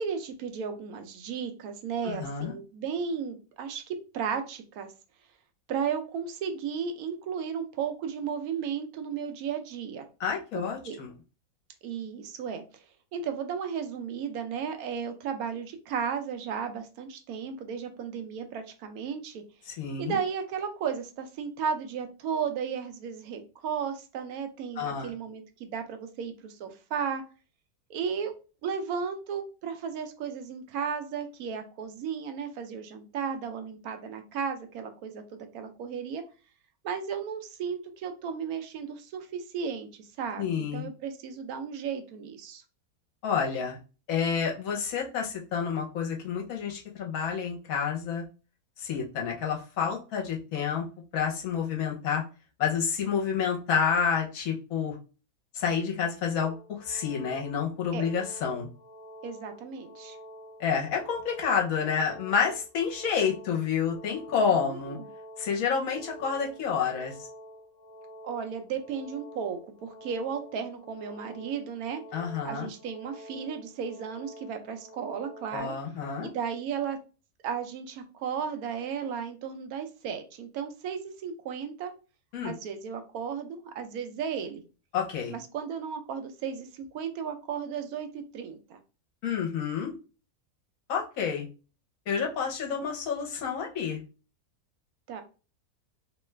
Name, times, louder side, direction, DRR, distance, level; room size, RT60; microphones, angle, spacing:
voice 1, 0.0-4.9 5.7-10.1 10.5-11.0 11.8-12.8 13.1-19.4 20.0-27.2 27.9-28.3 28.6-36.2 36.8-42.6 57.9-58.1 59.2-60.2 64.5-65.0 68.2-72.0 72.4-75.7 76.2-77.0 77.4-81.9 82.4-84.6 85.3-88.8 95.1-95.2, right 7 dB, 75° right, 6 dB, 1.0 m, -34 dB
voice 2, 2.0-2.5 10.2-11.1 19.7-20.2 24.8-25.1 40.4-40.9 43.2-43.8 44.1-48.2 48.8-50.9 51.1-52.2 52.6-54.9 55.5-56.6 56.8-58.7 60.6-65.0 65.4-67.3 72.1-72.7 75.5-76.3 82.3-82.5 84.9-85.3 89.2-89.9 90.9-91.5 92.1-94.0, left 6 dB, 70° left, 0 dB, 1.1 m, -29 dB
sound 1, 56.4-75.6, equal, 35° left, 0.4 m, -48 dB
3.0 x 2.3 x 3.2 m, 0.34 s
omnidirectional pair, 1.6 m